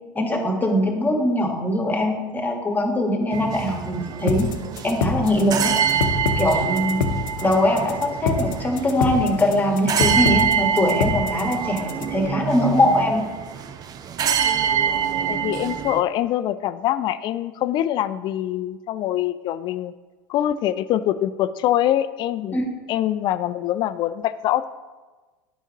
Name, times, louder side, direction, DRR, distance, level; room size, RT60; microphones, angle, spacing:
voice 1, 0.1-4.5 4.8-5.7 6.4-7.0 7.4-13.2 22.5-22.6, left 1 dB, 15° left, 2 dB, 1.5 m, -22 dB
sound 1, 3.3-16.0, right 8 dB, 35° right, 0.6 m, -26 dB
sound 2, 4.3-12.3, left 5 dB, 70° left, 0.7 m, -25 dB
voice 2, 15.3-19.9 20.3-22.6 22.9-24.6, left 12 dB, 40° left, 14 dB, 0.4 m, -24 dB
10.5 x 5.6 x 3.0 m, 1.3 s
hypercardioid pair, 80°, 11 cm